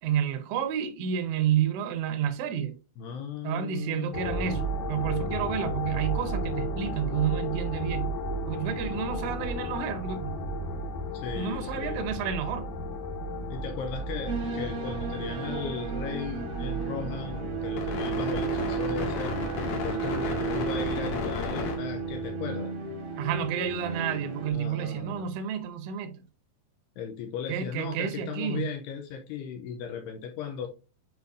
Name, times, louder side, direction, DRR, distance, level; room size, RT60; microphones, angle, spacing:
voice 1, 0.0-2.7 3.4-4.6 4.9-8.1 8.5-10.4 11.3-12.7 23.2-26.2 27.5-28.7, right 9 dB, 80° right, 3.2 m, -30 dB
voice 2, 3.0-4.2 11.1-12.0 13.5-19.3 19.8-22.8 24.5-25.3 27.0-30.7, left 7 dB, 85° left, 2.5 m, -37 dB
sound 1, 4.1-22.3, left 1 dB, 55° left, 3.2 m, -33 dB
sound 2, 14.3-24.5, right 5 dB, 60° right, 1.6 m, -34 dB
9.3 x 5.0 x 2.6 m
omnidirectional pair, 5.4 m